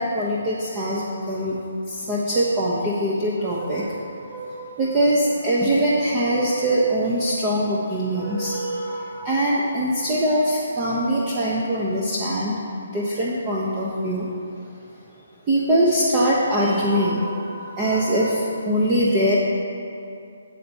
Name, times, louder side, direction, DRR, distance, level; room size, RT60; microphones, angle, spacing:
voice 1, 0.0-1.6 1.9-12.5 12.8-14.3 15.5-19.4, right 1 dB, 20° right, -6 dB, 0.9 m, -22 dB
9.3 x 4.2 x 7.0 m, 2.5 s
hypercardioid pair, 160°, 0 cm